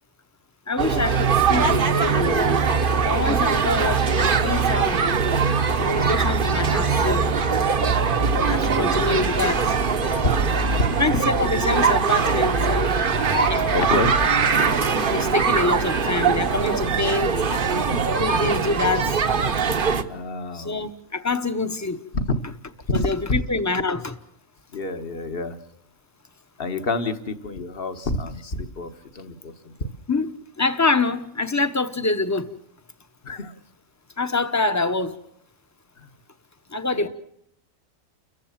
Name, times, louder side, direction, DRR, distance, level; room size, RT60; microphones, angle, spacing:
voice 1, 0.7-2.7 3.0-5.0 5.8-7.3 8.4-9.6 11.0-12.9 13.5-13.7 15.1-17.3 18.2-19.2 20.5-22.0 22.9-24.2 30.1-30.3 30.6-32.5 34.2-35.2 36.7-37.1, left 3 dB, 15° left, 0.9 m, -25 dB
sound 1, 0.8-20.0, right 5 dB, 45° right, 1.1 m, -21 dB
voice 2, 8.0-9.3 10.2-10.3 10.8-10.9 13.7-14.3 15.0-15.4 20.1-20.8 22.1-22.2 22.9-23.1 24.7-25.6 26.6-30.0 33.2-33.5 36.0-36.1 37.0-37.1, left 2 dB, 45° left, 1.5 m, -28 dB
30.0 x 15.0 x 7.4 m
omnidirectional pair, 1.4 m